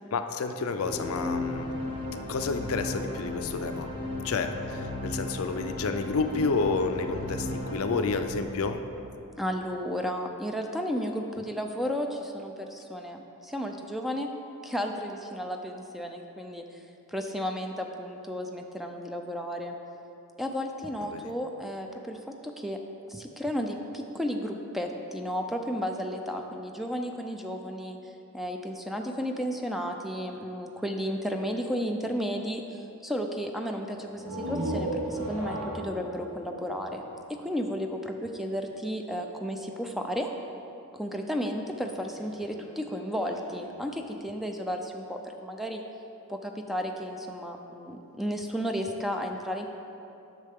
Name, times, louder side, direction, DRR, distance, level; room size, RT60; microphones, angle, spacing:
voice 1, 0.1-1.8 2.1-3.9 4.2-8.8 21.0-21.3, left 4 dB, 70° left, 7 dB, 0.5 m, -30 dB
sound 1, 0.8-9.3, left 1 dB, 20° right, 1.0 m, -35 dB
voice 2, 9.4-14.3 14.6-16.8 17.1-19.7 20.4-22.8 23.1-37.0 37.3-40.3 40.9-45.8 46.3-49.7, equal, ahead, 3 dB, 0.4 m, -33 dB
sound 2, 34.1-37.8, right 1 dB, 75° right, 1.5 m, -34 dB
Speech synthesizer, 41.4-44.5, left 1 dB, 35° right, 1.3 m, -53 dB
9.6 x 6.6 x 3.6 m, 2.8 s
head